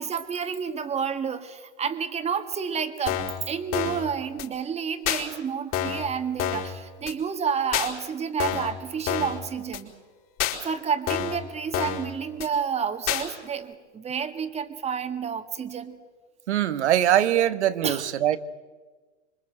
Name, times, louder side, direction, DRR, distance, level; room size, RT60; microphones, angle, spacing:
voice 1, 0.0-3.2 3.5-9.9 10.6-16.0 17.8-18.1, right 7 dB, 15° right, 8 dB, 2.0 m, -30 dB
sound 1, 3.1-3.4 3.7-4.0 4.4-4.5 5.1-5.2 5.7-6.1 6.4-6.7 7.1-7.2 7.7-7.9 8.4-8.7 9.1-9.4 9.7-9.8 10.4-10.6 11.1-11.4 11.7-12.1 12.4-12.5 13.1-13.2, left 10 dB, 35° left, 5.0 m, -27 dB
voice 2, 16.5-18.4, right 11 dB, 65° right, 12 dB, 1.7 m, -22 dB
26.5 x 24.0 x 7.9 m, 1.3 s
hypercardioid pair, 120°, 36 cm